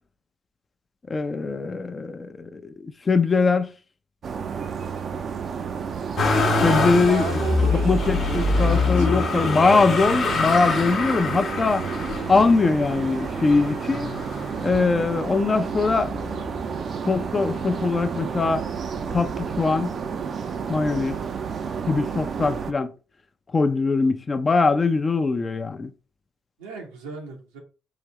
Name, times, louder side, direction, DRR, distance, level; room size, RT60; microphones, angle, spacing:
voice 1, 1.1-3.7 6.6-7.3 7.7-11.9 12.3-14.1 14.6-16.1 17.1-18.6 19.1-19.9 20.7-21.2 21.9-22.9 23.5-25.9, left 4 dB, 35° left, 0.5 m, -22 dB
sound 1, 4.2-22.7, right 6 dB, 50° right, 0.5 m, -31 dB
Motor vehicle (road), 6.2-15.3 15.9-16.7 17.0-18.1 19.1-19.2, left 3 dB, 55° left, 0.9 m, -25 dB
voice 2, 6.6-9.4 26.6-27.6, right 4 dB, 90° right, 1.0 m, -34 dB
4.8 x 2.7 x 3.1 m
hypercardioid pair, 60°, 0 cm